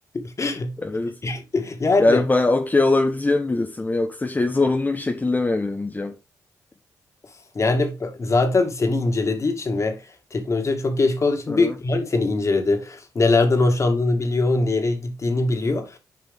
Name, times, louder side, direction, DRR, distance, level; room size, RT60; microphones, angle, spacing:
voice 1, 0.1-0.7 1.2-2.2 7.5-16.0, left 3 dB, 45° left, 2.2 m, -22 dB
voice 2, 0.8-1.3 2.0-6.2 11.5-11.7, left 2 dB, 25° left, 1.0 m, -22 dB
9.3 x 4.8 x 3.6 m
supercardioid pair, 60°, 7 cm